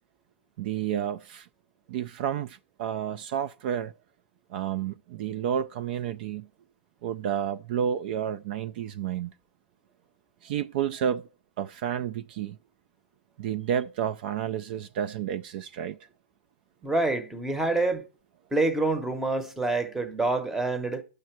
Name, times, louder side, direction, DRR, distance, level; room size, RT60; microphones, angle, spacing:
voice 1, 0.6-1.5 1.9-3.9 4.5-6.5 7.0-9.3 10.4-11.3 11.6-12.6 13.4-16.0, right 9 dB, 50° right, 0.4 m, -30 dB
voice 2, 16.8-18.0 18.5-21.0, right 2 dB, 5° right, 0.8 m, -27 dB
9.2 x 6.6 x 4.5 m
supercardioid pair, 155°, 6 cm